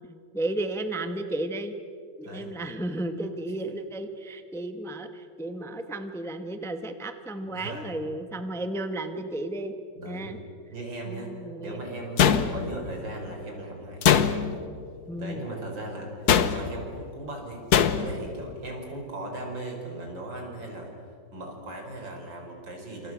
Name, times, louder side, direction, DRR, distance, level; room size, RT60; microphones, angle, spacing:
voice 1, 0.3-1.7 2.2-9.8 10.0-10.4 11.0-11.8 12.2-12.5 15.1-15.5, right 1 dB, ahead, 7 dB, 1.0 m, -33 dB
voice 2, 7.4-8.0 10.0-10.3 10.7-11.3 11.6-14.1 15.2-17.6 17.9-20.9 21.3-23.1, right 2 dB, 85° right, 2 dB, 5.5 m, -38 dB
sound 1, 12.2-12.9 14.0-14.7 16.3-16.8 17.7-18.2, left 8 dB, 60° left, 1.5 m, -22 dB
29.0 x 27.0 x 6.3 m, 2.5 s
omnidirectional pair, 2.0 m